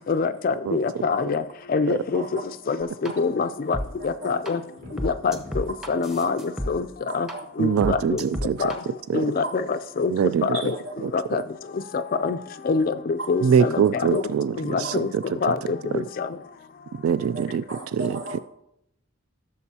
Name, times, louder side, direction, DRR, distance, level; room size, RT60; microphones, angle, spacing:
voice 1, 0.1-1.4 1.7-2.2 2.7-2.8 3.2-3.8 4.0-4.6 5.0-6.4 6.7-6.9 7.1-7.3 7.6-8.2 8.6-8.7 9.1-10.1 10.4-10.8 11.1-11.4 11.9-12.4 12.7-14.2 14.6-15.1 15.4-16.3, left 4 dB, 40° left, 10 dB, 0.3 m, -25 dB
voice 2, 2.1-2.4 4.2-4.3 5.0-5.1 6.2-6.3 7.1-7.4 9.1-9.5 10.5-10.9 14.1-14.2 14.8-15.0 17.3-18.4, right 2 dB, 65° right, 0 dB, 1.9 m, -36 dB
sound 1, 3.1-3.2 3.7-3.9 4.5-4.6 5.0-6.7 7.3-7.4 7.8-8.8, equal, 5° right, 0.8 m, -30 dB
sound 2, 4.6-5.9, right 1 dB, 40° right, 2.0 m, -43 dB
voice 3, 7.6-8.6 9.1-9.3 10.1-10.7 11.0-11.1 13.4-15.4 15.9-16.0 16.9-18.4, right 7 dB, 85° right, 15 dB, 0.3 m, -24 dB
15.5 x 6.8 x 2.8 m, 0.77 s
head